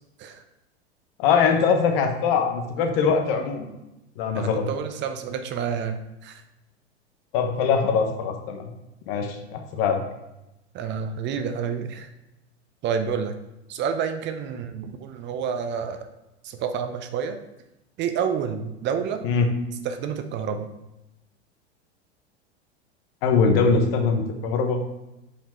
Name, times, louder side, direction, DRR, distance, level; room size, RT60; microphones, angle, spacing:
voice 1, 1.2-3.7 4.2-4.7 7.3-8.7 9.1-10.0 19.2-19.5 23.2-24.8, left 5 dB, 55° left, 5 dB, 1.2 m, -22 dB
voice 2, 4.3-6.4 10.7-12.1 12.8-13.3 13.7-16.1 16.4-17.4 18.0-19.2 19.8-20.7, right 7 dB, 35° right, 7 dB, 0.6 m, -29 dB
5.7 x 5.0 x 4.4 m, 0.93 s
hypercardioid pair, 90°, 34 cm